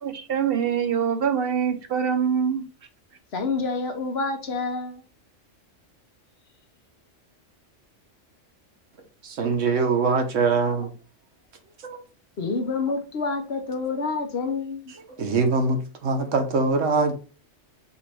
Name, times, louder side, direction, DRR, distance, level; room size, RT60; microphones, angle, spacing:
voice 1, 0.0-2.6, right 7 dB, 60° right, 0.8 m, -24 dB
voice 2, 3.3-4.9 12.4-14.9, left 4 dB, 60° left, 1.1 m, -28 dB
voice 3, 9.2-10.9 11.9-12.0 15.2-17.1, right 4 dB, 90° right, 1.3 m, -23 dB
5.4 x 2.6 x 3.3 m
omnidirectional pair, 1.2 m